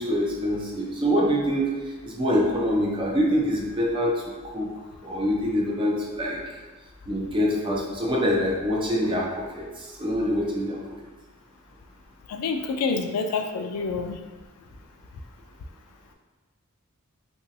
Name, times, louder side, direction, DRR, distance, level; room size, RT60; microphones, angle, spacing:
voice 1, 0.0-1.7 2.0-4.7 5.0-6.4 7.1-10.8, equal, 25° right, -3 dB, 0.5 m, -25 dB
voice 2, 12.3-14.2, left 4 dB, 85° left, 6 dB, 0.3 m, -27 dB
2.9 x 2.7 x 2.6 m, 1.3 s
head